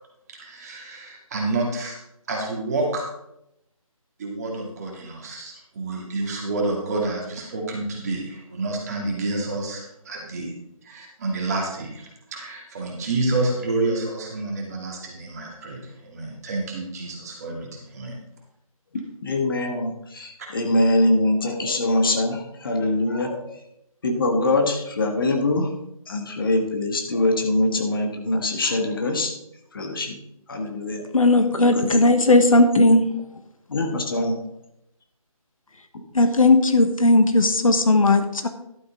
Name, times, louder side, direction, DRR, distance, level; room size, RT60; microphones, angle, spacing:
voice 1, 0.3-2.0 2.3-3.0 4.2-10.5 10.8-18.2 20.4-20.5, right 2 dB, 25° right, -1 dB, 2.4 m, -29 dB
voice 2, 19.2-23.4 24.0-25.7 26.1-29.3 29.7-30.2 30.5-31.0 31.6-31.9 33.7-34.4, left 2 dB, 40° left, 3 dB, 1.6 m, -23 dB
voice 3, 31.1-33.0 36.1-38.5, left 2 dB, 65° left, 8 dB, 1.3 m, -17 dB
12.0 x 9.3 x 3.8 m, 0.82 s
figure-of-eight pair, 160°, 18 cm